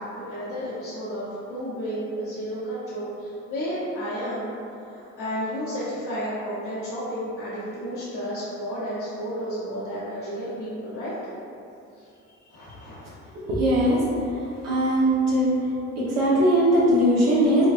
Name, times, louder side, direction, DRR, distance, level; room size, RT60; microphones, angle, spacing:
voice 1, 0.0-4.5 4.9-11.1 12.4-13.0, equal, 75° left, -12 dB, 1.0 m, -32 dB
voice 2, 13.5-14.0 14.6-15.5 16.1-17.7, right 1 dB, 60° right, -8 dB, 1.1 m, -20 dB
5.0 x 2.3 x 2.5 m, 2.6 s
cardioid pair, 90°, 30 cm